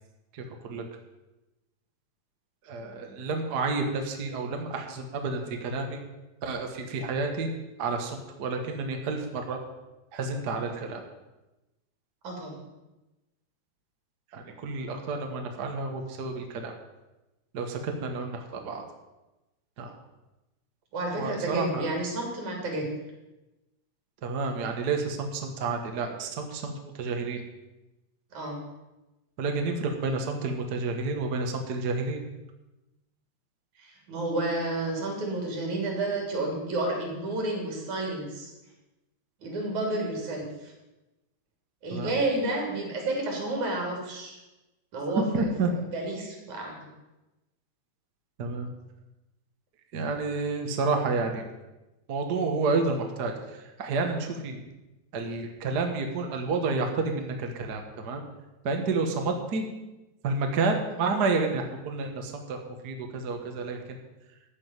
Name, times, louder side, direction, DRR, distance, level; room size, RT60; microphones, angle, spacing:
voice 1, 0.3-0.8 2.6-6.0 6.4-7.5 7.8-9.6 10.1-11.0 14.3-16.7 17.5-18.8 19.8-19.9 21.1-21.9 24.2-26.7 27.0-27.4 29.4-32.2 41.9-42.1 45.3-45.7 48.4-48.7 49.9-51.4 52.1-54.6 55.1-58.2 58.6-59.7 60.2-62.6 62.8-63.8, right 3 dB, 45° right, 4 dB, 1.6 m, -30 dB
voice 2, 12.2-12.6 20.9-22.9 28.3-28.6 33.8-38.5 39.4-40.7 41.8-44.4 44.9-45.5 45.9-46.7, right 2 dB, 80° right, 0 dB, 4.6 m, -31 dB
13.5 x 6.2 x 9.1 m, 1.0 s
omnidirectional pair, 3.3 m